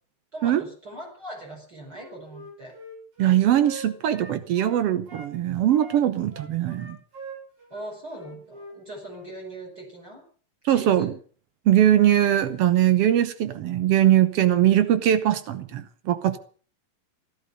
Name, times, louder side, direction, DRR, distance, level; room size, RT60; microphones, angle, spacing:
voice 1, 0.3-2.8 7.7-10.2 10.7-11.1, right 1 dB, 25° right, 5.7 m, -40 dB
Wind instrument woodwind instrument, 1.9-5.3 5.7-8.8 9.1-9.3, right 2 dB, 55° right, 6.4 m, -43 dB
voice 2, 3.2-7.0 10.6-11.1 11.6-16.4, right 11 dB, 90° right, 1.3 m, -21 dB
16.0 x 12.5 x 6.7 m
omnidirectional pair, 4.1 m